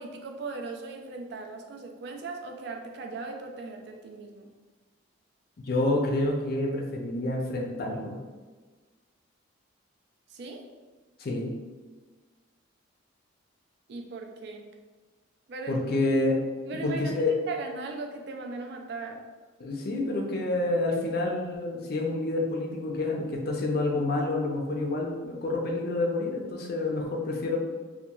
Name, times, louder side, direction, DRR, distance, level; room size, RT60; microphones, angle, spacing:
voice 1, 0.0-4.5 10.3-10.6 13.9-14.7 15.5-15.8 16.7-17.1 17.5-19.2, right 3 dB, 55° right, 3 dB, 0.3 m, -38 dB
voice 2, 5.6-8.2 11.2-11.5 15.7-16.3 16.8-17.3 19.6-27.6, left 2 dB, 50° left, 0 dB, 0.4 m, -28 dB
2.8 x 2.3 x 2.2 m, 1.4 s
head